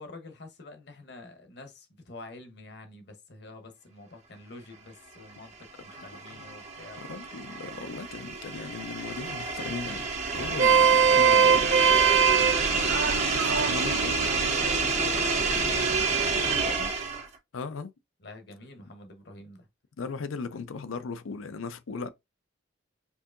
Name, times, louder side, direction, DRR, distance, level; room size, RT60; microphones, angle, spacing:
voice 1, 0.0-5.5 5.8-7.0 12.9-14.5 15.1-16.9 18.2-19.7, left 2 dB, 55° left, 1.0 m, -47 dB
sound 1, 5.4-17.4, right 4 dB, 35° right, 0.8 m, -29 dB
voice 2, 7.0-10.1 10.3-11.7 13.4-14.3 17.5-17.9 18.8-18.9 20.0-22.1, left 4 dB, 90° left, 0.5 m, -37 dB
Vehicle horn car horn honking, 10.4-16.8, right 6 dB, 65° right, 0.5 m, -24 dB
4.6 x 2.8 x 2.5 m
head